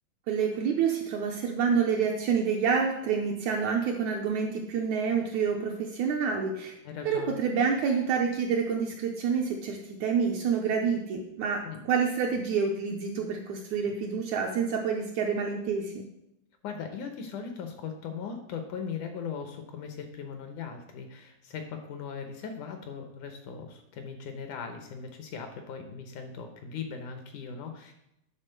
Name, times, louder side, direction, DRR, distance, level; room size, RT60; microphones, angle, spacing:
voice 1, 0.3-6.7 7.1-16.0, right 6 dB, 75° right, 1 dB, 1.8 m, -28 dB
voice 2, 6.8-7.4 11.6-11.8 16.6-27.9, left 6 dB, 70° left, 6 dB, 2.1 m, -39 dB
10.0 x 4.2 x 6.6 m, 0.83 s
omnidirectional pair, 4.1 m